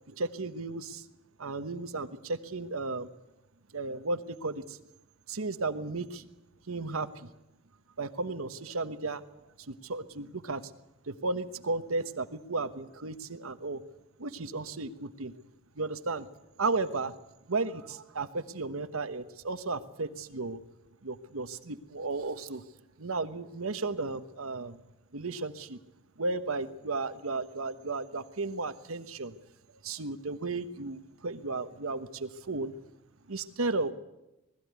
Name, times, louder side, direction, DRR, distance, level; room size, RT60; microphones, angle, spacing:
voice 1, 0.1-1.0 1.4-3.1 3.7-4.8 5.3-6.2 6.7-7.3 8.0-9.2 9.7-10.6 11.1-13.8 14.2-15.3 15.8-16.3 16.6-17.1 17.5-20.6 21.0-22.6 23.0-24.8 25.1-25.8 26.2-29.3 29.8-32.7 33.3-33.9, right 3 dB, 85° right, 11 dB, 1.2 m, -34 dB
20.0 x 14.5 x 9.5 m, 0.96 s
head